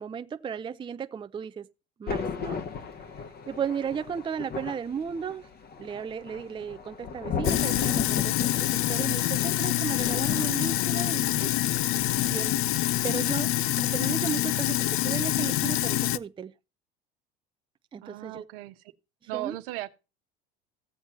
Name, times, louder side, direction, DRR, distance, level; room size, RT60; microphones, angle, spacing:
voice 1, 0.0-1.7 2.0-2.8 3.2-5.5 5.8-11.5 12.3-16.5 17.9-18.4 19.3-19.6, right 7 dB, 15° right, 0.5 m, -35 dB
Thunder, 2.1-12.7 12.9-13.2, left 6 dB, 35° left, 1.1 m, -36 dB
Sink (filling or washing), 7.4-16.2, left 14 dB, 50° left, 0.5 m, -26 dB
voice 2, 18.0-18.8 19.3-19.9, right 17 dB, 75° right, 1.1 m, -36 dB
15.0 x 7.4 x 3.0 m
hypercardioid pair, 95°, 29 cm